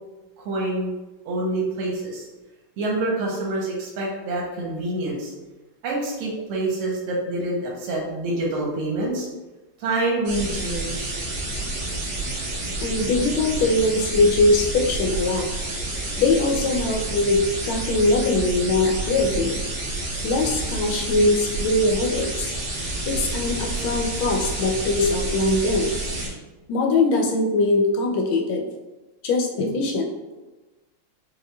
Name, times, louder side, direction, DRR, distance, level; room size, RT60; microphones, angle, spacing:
voice 1, 0.4-0.9 1.2-2.3 2.8-5.3 5.8-9.3 9.8-11.1, right 2 dB, 90° right, -2 dB, 1.6 m, -26 dB
sound 1, 10.3-26.3, right 2 dB, 65° right, 1.8 m, -29 dB
voice 2, 12.8-15.5 16.2-19.6 20.2-22.5 23.1-25.9 26.7-28.6 29.2-30.1, left 2 dB, 80° left, 1 dB, 1.3 m, -21 dB
5.5 x 2.6 x 2.2 m, 1.1 s
omnidirectional pair, 2.3 m